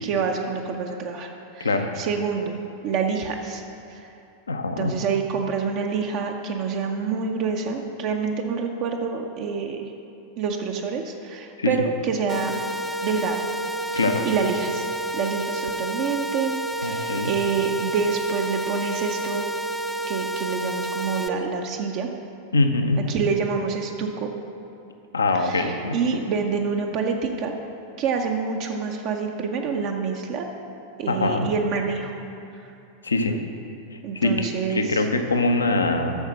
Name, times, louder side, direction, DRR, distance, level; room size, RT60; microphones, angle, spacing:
voice 1, 0.0-2.6 2.8-3.6 3.9-4.1 4.8-9.9 10.4-12.6 13.0-13.5 13.9-14.9 15.1-19.4 20.1-22.1 23.0-24.3 25.3-27.5 28.0-30.5 31.0-32.2 32.5-32.7 33.3-33.4 34.0-35.1, right 5 dB, 40° right, 2 dB, 0.6 m, -27 dB
voice 2, 4.5-4.9 11.6-11.7 14.0-14.3 16.8-17.3 22.5-23.0 25.1-26.0 31.1-31.5 33.0-33.4 34.1-36.2, left 2 dB, 75° left, 6 dB, 0.7 m, -23 dB
sound 1, 12.3-21.3, right 1 dB, ahead, 0.5 m, -30 dB
8.1 x 6.5 x 6.3 m, 2.8 s
figure-of-eight pair, 90°, 0 cm